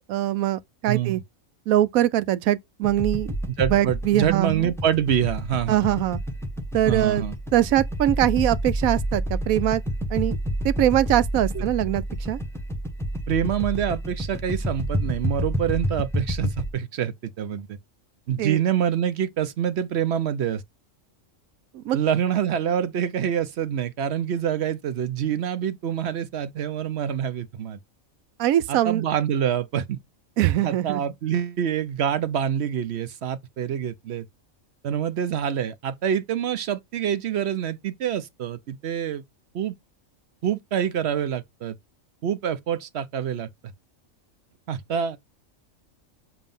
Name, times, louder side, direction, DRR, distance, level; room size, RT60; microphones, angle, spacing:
voice 1, 0.1-1.2 1.7-3.3 3.7-4.7 5.7-6.2 6.7-7.2 7.5-9.8 10.1-10.4 10.6-12.4 18.4-18.6 21.7-22.0 28.4-29.0 30.4-31.0, right 13 dB, 85° right, 1.0 m, -22 dB
voice 2, 0.9-1.2 3.6-6.0 6.8-7.3 11.5-11.6 13.3-17.8 18.3-20.6 21.9-27.8 28.7-30.0 30.5-34.2 34.8-39.2 39.5-39.7 40.4-41.7 42.2-43.5 44.7-45.2, right 9 dB, 60° right, 0.8 m, -26 dB
sound 1, 2.8-16.7, equal, ahead, 0.8 m, -29 dB
7.2 x 2.8 x 5.3 m
omnidirectional pair, 1.4 m